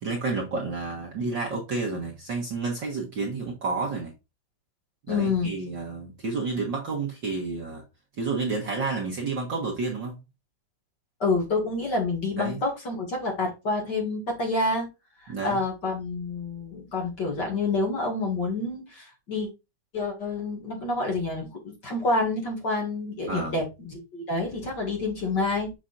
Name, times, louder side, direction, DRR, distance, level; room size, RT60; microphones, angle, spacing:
voice 1, 0.0-4.1 5.1-7.8 8.2-10.2 12.4-12.6 15.3-15.6 23.3-23.6, right 4 dB, 45° right, 1.8 m, -30 dB
voice 2, 5.1-5.5 11.2-14.9 15.2-19.5 19.9-25.7, left 3 dB, 40° left, 2.4 m, -28 dB
7.1 x 5.9 x 2.5 m
omnidirectional pair, 3.4 m